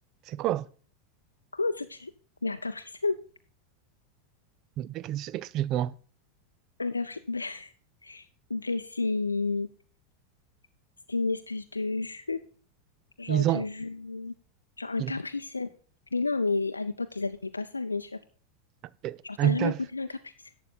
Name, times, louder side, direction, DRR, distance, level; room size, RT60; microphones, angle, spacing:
voice 1, 0.3-0.6 4.8-5.9 13.3-13.6 15.0-15.1 19.0-19.8, right 12 dB, 40° right, 0.4 m, -28 dB
voice 2, 1.5-2.1 2.4-3.2 6.8-7.7 8.0-9.7 11.1-12.4 13.2-14.3 14.8-15.7 16.1-18.2 19.2-20.3, left 3 dB, 80° left, 0.5 m, -31 dB
11.5 x 7.7 x 4.1 m
figure-of-eight pair, 85°, 0 cm